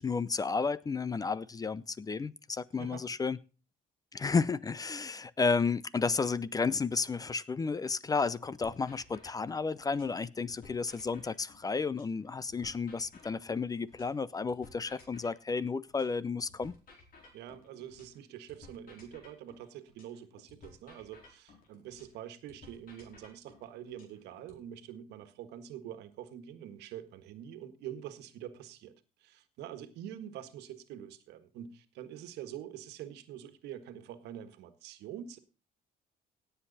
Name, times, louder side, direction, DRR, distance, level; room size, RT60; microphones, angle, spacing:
voice 1, 0.0-3.4 4.1-16.7, left 4 dB, 20° left, 0.5 m, -32 dB
sound 1, 8.6-10.2 10.5-14.2 14.5-18.2 18.5-22.2 22.5-24.6, left 3 dB, 60° left, 4.4 m, -57 dB
voice 2, 17.3-28.9 29.2-35.4, right 10 dB, 85° right, 1.6 m, -45 dB
17.5 x 8.0 x 4.1 m
cardioid pair, 110°, 17 cm